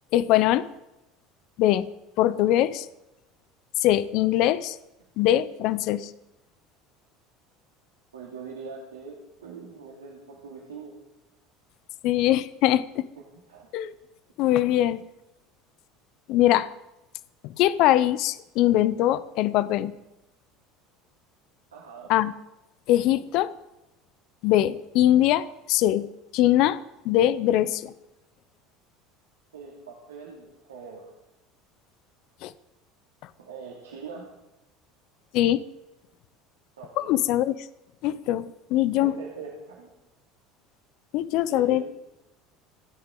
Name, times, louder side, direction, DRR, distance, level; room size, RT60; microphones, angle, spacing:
voice 1, 0.1-0.7 1.6-1.9 2.2-2.9 3.8-4.8 5.2-6.1 12.0-13.1 13.7-13.9 14.4-15.0 16.3-16.7 17.4-19.9 22.1-22.3 22.9-23.5 24.4-26.1 26.3-26.8 27.0-27.9 32.4-32.5 35.3-35.6 37.0-37.6 38.0-39.2 41.1-41.8, left 13 dB, 60° left, 15 dB, 0.7 m, -22 dB
voice 2, 8.1-11.0 13.2-13.7 21.7-22.1 29.5-31.2 33.4-34.3 36.8-37.1 38.9-39.9 41.5-41.8, right 5 dB, 85° right, -2 dB, 2.7 m, -42 dB
28.0 x 9.6 x 3.9 m, 0.93 s
hypercardioid pair, 75°, 0 cm